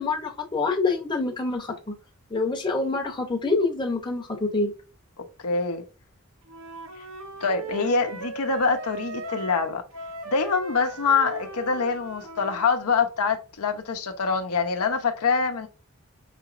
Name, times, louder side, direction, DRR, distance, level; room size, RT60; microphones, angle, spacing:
voice 1, 0.0-1.9 2.3-4.7, left 3 dB, 20° left, 0.7 m, -26 dB
voice 2, 5.2-5.8 7.0-7.1 7.4-9.8 10.3-15.7, left 5 dB, 90° left, 0.7 m, -25 dB
Wind instrument woodwind instrument, 6.5-12.7, right 3 dB, 65° right, 0.6 m, -38 dB
4.9 x 2.9 x 2.5 m
head